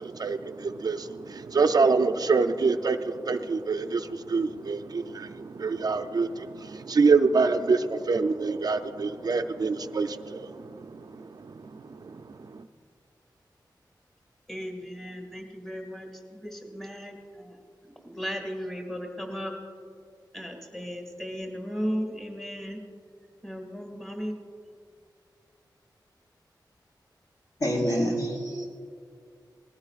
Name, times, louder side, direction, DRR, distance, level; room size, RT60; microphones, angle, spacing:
voice 1, 0.0-12.7, right 4 dB, 55° right, 8 dB, 0.5 m, -26 dB
voice 2, 14.5-17.6 18.0-19.5 20.3-22.8 23.4-24.4, equal, 5° left, 1 dB, 1.9 m, -35 dB
voice 3, 27.6-28.7, equal, 50° left, -2 dB, 3.6 m, -27 dB
19.5 x 15.5 x 2.4 m, 2.2 s
wide cardioid pair, 105°, 8 cm